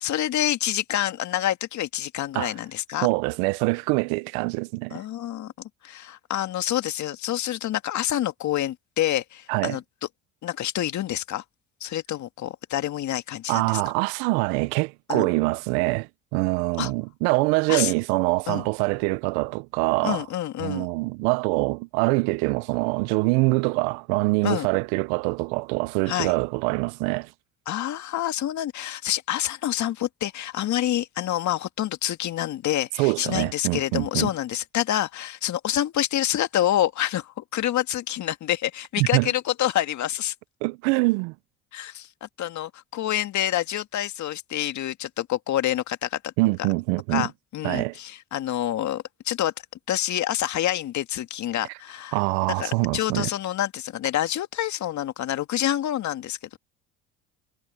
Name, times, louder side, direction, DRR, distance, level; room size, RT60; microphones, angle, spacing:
voice 1, 0.0-3.1 4.9-5.5 5.8-9.8 10.4-11.4 11.8-13.8 15.1-15.3 16.8-16.9 17.7-17.9 18.5-18.6 20.0-20.9 24.4-24.7 26.1-26.3 27.7-40.3 41.7-46.3 47.1-49.5 49.9-52.2 52.6-56.6, left 12 dB, 55° left, 2.0 m, -27 dB
voice 2, 3.0-5.0 9.5-9.8 13.5-20.2 20.6-27.3 33.0-34.3 39.0-39.3 40.6-41.3 46.4-47.3 47.6-48.0 52.1-53.3, right 26 dB, 80° right, 0.9 m, -24 dB
hypercardioid pair, 65°, 34 cm